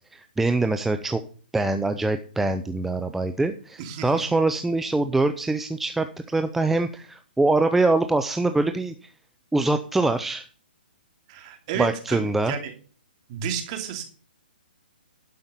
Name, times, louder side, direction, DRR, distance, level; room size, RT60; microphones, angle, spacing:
voice 1, 0.1-1.2 1.5-9.1 9.5-10.5 11.8-12.5, right 2 dB, 5° right, 8 dB, 0.5 m, -24 dB
voice 2, 3.8-4.2 11.3-12.7 13.3-14.0, right 8 dB, 35° right, 5 dB, 2.7 m, -32 dB
11.5 x 5.5 x 6.7 m, 0.42 s
hypercardioid pair, 150°, 6 cm